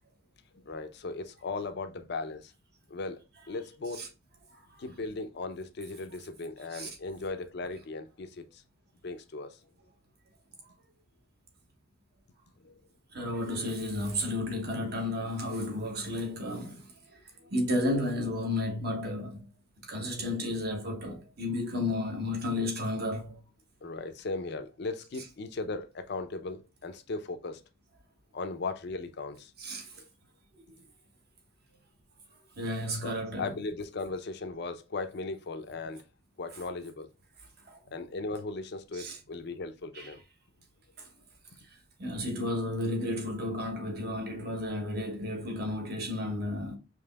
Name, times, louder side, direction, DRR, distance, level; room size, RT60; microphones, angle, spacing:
voice 1, 0.5-2.5 2.9-3.2 3.5-4.1 4.8-8.6 9.0-9.6 12.6-12.8 23.8-27.6 28.3-29.5 30.0-30.1 33.0-36.0 36.4-37.1 37.9-40.2, left 3 dB, 50° left, 0.5 m, -37 dB
voice 2, 13.1-16.8 17.5-19.5 19.9-23.4 29.6-29.9 30.6-30.7 32.6-33.5 37.7-37.8 38.9-39.2 39.9-40.1 42.0-46.8, left 1 dB, 50° right, 1.1 m, -32 dB
5.1 x 2.9 x 2.2 m
head